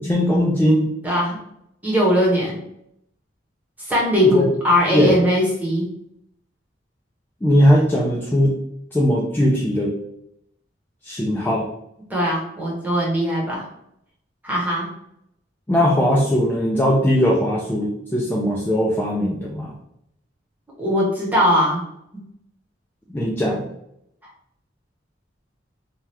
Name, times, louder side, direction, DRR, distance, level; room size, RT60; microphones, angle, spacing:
voice 1, 0.0-0.9 4.2-4.5 4.9-5.2 7.4-8.5 8.9-9.9 11.0-11.7 15.7-19.7 23.1-23.6, equal, 10° left, -4 dB, 0.3 m, -19 dB
voice 2, 1.0-1.4 1.8-2.6 3.8-5.9 12.1-13.6 14.4-14.9 20.8-21.8, equal, 10° right, -4 dB, 0.8 m, -20 dB
2.7 x 2.3 x 3.2 m, 0.78 s
head